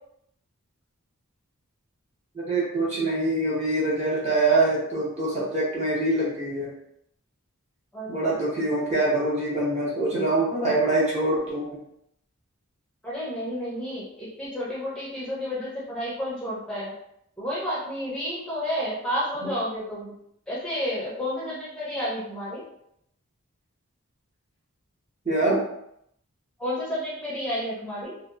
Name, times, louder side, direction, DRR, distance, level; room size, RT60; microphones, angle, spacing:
voice 1, 2.3-6.7 8.1-11.8 25.2-25.6, right 2 dB, 30° right, -6 dB, 0.8 m, -24 dB
voice 2, 7.9-8.4 8.7-8.8 13.0-16.9 17.4-20.1 20.5-22.6 26.6-28.1, equal, 5° left, -8 dB, 0.7 m, -31 dB
2.7 x 2.2 x 2.4 m, 0.75 s
head